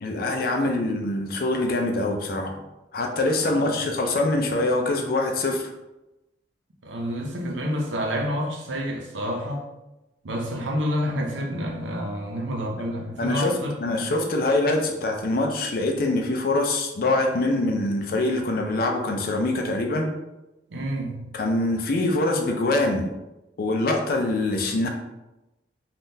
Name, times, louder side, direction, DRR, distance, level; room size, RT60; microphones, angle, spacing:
voice 1, 0.0-2.6 2.9-5.7 13.2-20.1 21.3-23.1 23.6-24.9, left 2 dB, 55° left, 3 dB, 0.4 m, -24 dB
voice 2, 3.5-3.8 6.8-9.7 10.2-14.1 20.7-21.3, equal, 85° right, 1 dB, 0.7 m, -29 dB
3.6 x 2.4 x 2.7 m, 0.97 s
head